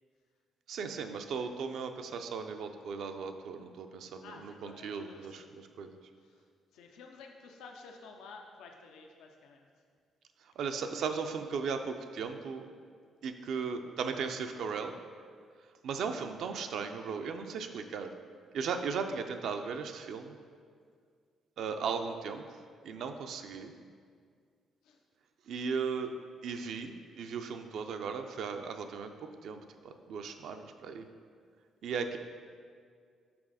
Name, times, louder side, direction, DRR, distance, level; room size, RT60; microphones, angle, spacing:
voice 1, 0.7-5.9 10.6-12.7 13.2-15.0 15.8-18.1 18.5-20.3 21.6-22.4 22.8-23.7 25.5-26.1 26.4-29.6 29.8-31.1 31.8-32.2, right 5 dB, 70° right, 6 dB, 0.4 m, -37 dB
voice 2, 4.2-5.5 6.2-6.4 6.7-9.7 24.8-25.0, left 4 dB, 85° left, 2 dB, 0.5 m, -52 dB
6.0 x 4.0 x 4.9 m, 2.1 s
cardioid pair, 90°, 0 cm